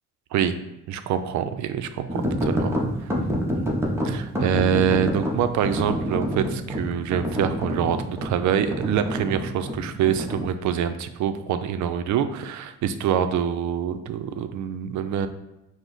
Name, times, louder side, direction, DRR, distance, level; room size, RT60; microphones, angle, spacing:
voice 1, 0.9-2.7 3.5-3.7 4.0-15.3, right 8 dB, 70° right, 10 dB, 0.4 m, -25 dB
sound 1, 2.1-10.5, equal, 10° right, 0.7 m, -28 dB
4.9 x 2.0 x 3.8 m, 0.92 s
cardioid pair, 90°, 30 cm